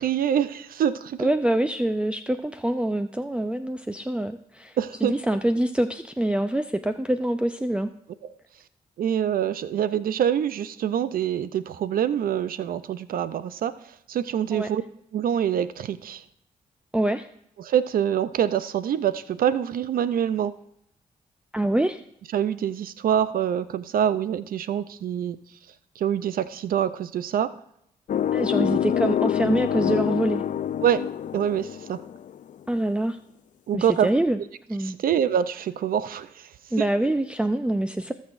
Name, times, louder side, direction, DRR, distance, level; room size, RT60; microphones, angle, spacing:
voice 1, 0.0-1.3 4.8-5.1 9.0-13.8 14.1-14.8 15.1-16.2 17.6-20.6 22.3-25.4 26.0-27.5 30.8-32.0 33.7-34.1 34.8-36.5, right 9 dB, 70° right, 14 dB, 0.5 m, -25 dB
voice 2, 1.2-7.9 14.5-14.7 16.9-17.3 21.5-22.0 28.3-30.4 32.7-33.2 33.7-34.4 34.7-35.0 36.7-38.1, right 1 dB, 5° right, 9 dB, 0.5 m, -25 dB
sound 1, 28.1-32.4, left 10 dB, 55° left, 0.4 m, -26 dB
17.5 x 6.3 x 2.5 m, 0.75 s
cardioid pair, 60°, 15 cm